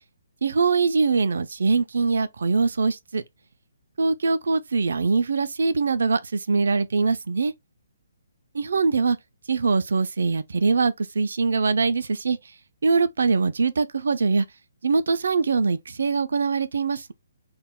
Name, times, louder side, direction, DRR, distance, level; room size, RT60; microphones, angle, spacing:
voice 1, 0.4-3.2 4.0-7.5 8.5-9.2 9.5-12.4 12.8-14.5 14.8-17.1, right 4 dB, 75° right, 0.4 m, -22 dB
2.2 x 2.1 x 3.6 m
hypercardioid pair, 160°, 0 cm